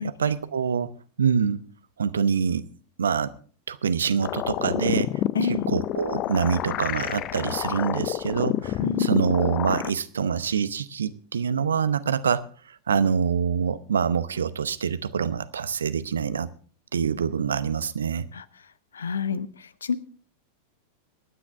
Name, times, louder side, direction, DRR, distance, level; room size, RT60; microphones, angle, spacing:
voice 1, 0.0-1.6 2.0-2.6 3.0-3.3 3.7-5.1 5.4-12.4 12.9-16.5 16.9-18.3, right 6 dB, 70° right, 15 dB, 0.7 m, -25 dB
sound 1, 4.2-9.9, left 13 dB, 35° left, 0.5 m, -28 dB
voice 2, 5.3-5.7 8.8-9.2 18.3-18.4 18.9-19.5 19.8-20.0, left 5 dB, 70° left, 17 dB, 0.7 m, -28 dB
23.5 x 9.8 x 3.4 m, 0.42 s
figure-of-eight pair, 90°, 0 cm